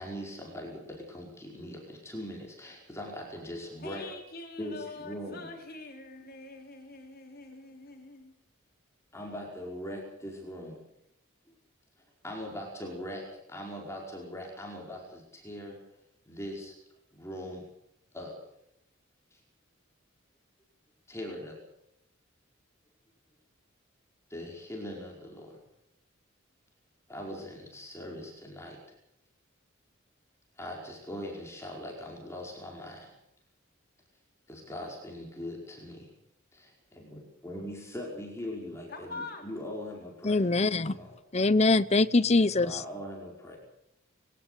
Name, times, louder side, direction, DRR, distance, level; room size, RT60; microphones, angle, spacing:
voice 1, 0.0-4.1 4.6-5.5 6.2-6.3 9.1-10.8 12.2-15.8 16.3-16.8 17.1-17.6 18.1-18.4 19.3-19.4 21.1-21.6 24.3-25.6 27.1-28.8 30.6-33.1 34.5-36.1 36.5-40.6 40.8-41.1 42.4-43.6, left 1 dB, 15° left, 5.2 m, -41 dB
voice 2, 3.8-8.3 38.9-39.5, left 3 dB, 45° left, 3.9 m, -44 dB
voice 3, 40.2-41.0 41.3-42.8, left 3 dB, 30° left, 0.8 m, -23 dB
22.0 x 17.5 x 8.4 m
head